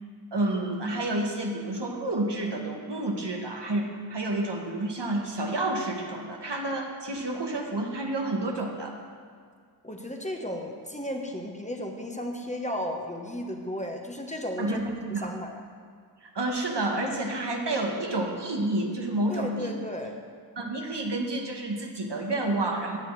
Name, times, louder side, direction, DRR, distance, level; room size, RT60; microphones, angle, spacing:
voice 1, 0.3-8.9 14.6-15.3 16.3-19.8 20.6-23.0, right 2 dB, 80° right, 1 dB, 1.2 m, -29 dB
voice 2, 9.8-14.8 15.1-15.6 19.3-20.3, left 1 dB, 15° left, 2 dB, 1.1 m, -34 dB
18.0 x 6.4 x 3.2 m, 2.1 s
wide cardioid pair, 45°, 41 cm